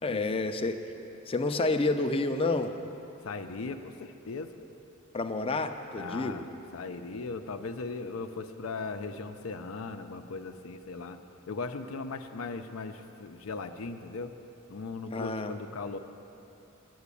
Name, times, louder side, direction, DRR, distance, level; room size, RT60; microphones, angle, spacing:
voice 1, 0.0-0.8 1.3-2.7 5.1-6.4 15.1-15.5, left 2 dB, 25° left, 7 dB, 0.5 m, -29 dB
voice 2, 3.2-4.5 6.0-6.5 6.7-11.2 11.5-14.3 14.7-16.0, left 4 dB, 75° left, 6 dB, 0.6 m, -38 dB
9.9 x 9.4 x 8.3 m, 2.9 s
head